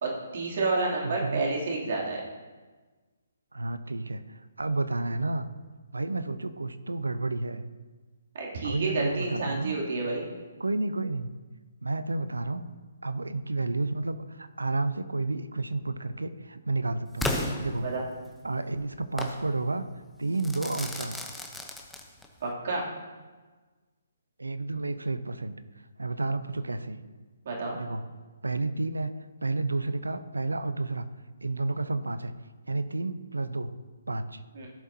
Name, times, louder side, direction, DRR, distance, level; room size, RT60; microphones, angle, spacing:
voice 1, 0.0-2.2 8.3-10.3 17.8-18.0 22.4-22.9 27.4-27.8 34.5-34.7, right 3 dB, 55° right, -3 dB, 2.8 m, -30 dB
voice 2, 1.0-1.4 3.5-5.5 5.9-7.6 8.6-9.7 10.6-11.3 11.8-12.6 13.0-17.9 18.4-19.8 20.2-21.3 24.4-25.5 26.0-27.0 27.8-28.0 28.4-31.1 31.4-32.3 32.7-33.7 34.1-34.4, right 2 dB, 85° right, 12 dB, 0.6 m, -31 dB
Crackle / Fireworks, 17.2-18.4 19.2-19.4 20.4-22.4, left 1 dB, 5° left, 0.9 m, -33 dB
16.5 x 7.3 x 2.8 m, 1.3 s
figure-of-eight pair, 140°, 0 cm